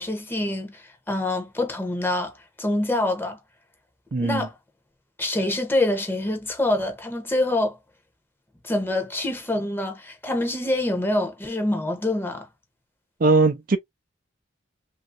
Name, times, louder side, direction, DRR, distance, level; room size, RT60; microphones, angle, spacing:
voice 1, 0.0-3.4 4.2-4.6 5.2-7.8 8.6-12.5, left 1 dB, 10° left, 0.9 m, -26 dB
voice 2, 4.1-4.5 13.2-13.8, right 3 dB, 50° right, 0.5 m, -20 dB
3.1 x 2.7 x 2.5 m
head